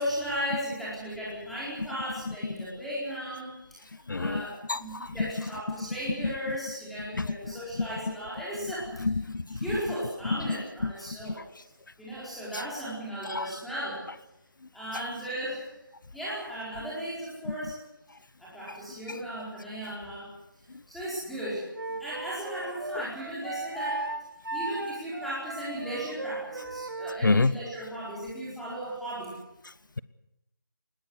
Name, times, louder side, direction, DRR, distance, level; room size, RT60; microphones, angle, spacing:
voice 1, 0.0-3.8 4.1-9.1 9.6-11.4 12.0-14.0 14.7-15.7 16.1-17.7 18.4-20.3 20.9-21.7 22.0-24.1 24.5-29.3, equal, ahead, -9 dB, 4.5 m, -36 dB
voice 2, 4.1-5.3 5.7-5.8 6.2-6.3 7.1-7.9 9.0-9.7 10.2-10.6 10.8-10.9 11.3-11.4 12.5-12.6 13.2-13.6 17.5-17.6 18.1-18.2 18.7-18.8 19.1-19.2 22.9-23.1 27.2-27.6 29.6-30.0, left 3 dB, 65° left, 17 dB, 0.9 m, -29 dB
Wind instrument woodwind instrument, 21.7-27.2, right 2 dB, 75° right, 3.0 m, -36 dB
20.5 x 19.0 x 9.6 m, 0.87 s
figure-of-eight pair, 180°, 11 cm